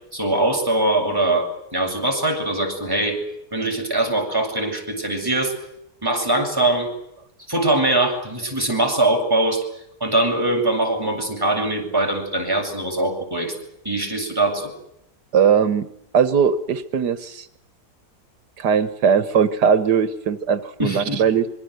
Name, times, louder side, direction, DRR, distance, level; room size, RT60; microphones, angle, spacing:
voice 1, 0.1-3.2 3.5-5.5 6.0-6.9 7.5-9.6 10.0-13.5 13.8-14.7 20.8-21.2, right 2 dB, 15° right, 1 dB, 7.6 m, -22 dB
voice 2, 15.3-15.9 16.1-17.5 18.6-21.5, right 7 dB, 85° right, 11 dB, 1.8 m, -19 dB
26.0 x 23.5 x 8.0 m, 0.78 s
omnidirectional pair, 1.7 m